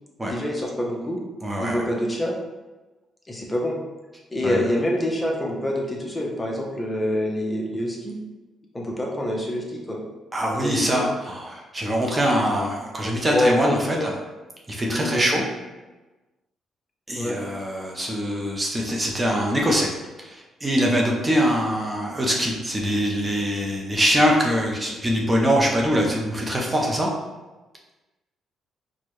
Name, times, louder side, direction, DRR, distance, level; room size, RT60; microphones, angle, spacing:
voice 1, 0.2-1.2 1.6-2.3 3.3-3.8 4.3-8.2 8.7-10.0 10.5-11.1 13.3-14.1 14.9-15.4 17.2-17.4, left 1 dB, 20° left, -1 dB, 0.7 m, -26 dB
voice 2, 1.4-1.8 4.4-4.7 10.3-14.1 14.7-15.4 17.1-19.9 20.2-27.1, equal, 20° right, -1 dB, 0.6 m, -23 dB
4.3 x 2.2 x 3.1 m, 1.1 s
cardioid pair, 90°, 0 cm